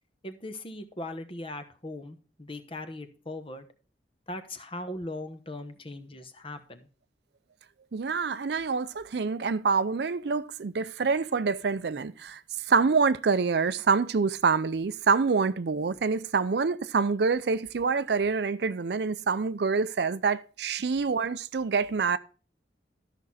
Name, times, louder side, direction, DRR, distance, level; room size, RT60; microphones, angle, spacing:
voice 1, 0.2-3.7 4.3-6.9, left 1 dB, 30° left, 1.0 m, -39 dB
voice 2, 7.9-12.4 12.7-22.2, right 5 dB, 60° right, 0.5 m, -26 dB
13.0 x 6.1 x 4.1 m
head